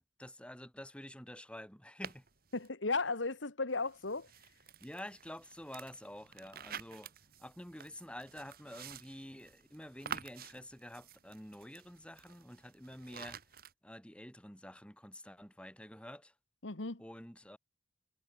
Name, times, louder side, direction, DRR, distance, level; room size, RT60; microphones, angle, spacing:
voice 1, 0.0-2.3 4.8-7.1 7.4-13.4 13.8-16.3 17.0-17.6, left 1 dB, 5° left, 4.5 m, -49 dB
sound 1, 2.0-2.7 3.7-13.7, right 6 dB, 50° right, 3.3 m, -50 dB
voice 2, 2.5-4.3 16.6-17.0, left 3 dB, 85° left, 1.8 m, -35 dB
head